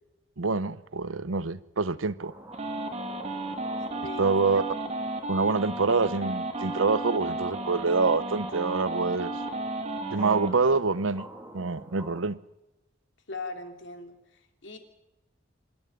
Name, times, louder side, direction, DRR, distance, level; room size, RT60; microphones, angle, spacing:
voice 1, 0.4-2.3 4.2-4.7 5.3-9.3 10.1-11.3 11.5-12.4, right 4 dB, 80° right, 0.8 m, -26 dB
sound 1, 2.2-12.2, right 1 dB, 10° right, 2.4 m, -47 dB
sound 2, 2.5-10.5, right 2 dB, 35° right, 2.4 m, -33 dB
voice 2, 4.0-4.6 13.3-14.8, left 3 dB, 65° left, 3.0 m, -40 dB
25.5 x 12.5 x 8.9 m
head